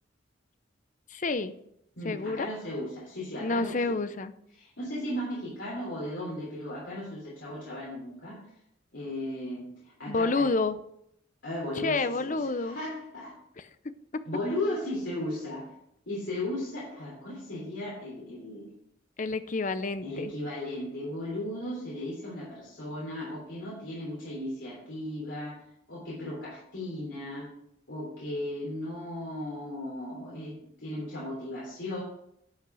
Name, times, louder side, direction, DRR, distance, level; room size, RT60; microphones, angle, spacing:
voice 1, 1.1-1.5 2.0-2.5 3.4-4.3 10.1-10.8 11.8-12.8 19.2-20.3, left 3 dB, 40° left, 12 dB, 0.6 m, -29 dB
voice 2, 2.0-3.9 4.5-8.4 8.9-10.5 11.4-13.3 14.2-15.7 16.1-18.7 20.0-25.6 25.9-27.5 27.9-32.0, left 1 dB, 70° left, -5 dB, 3.4 m, -36 dB
11.0 x 6.0 x 6.3 m, 0.75 s
head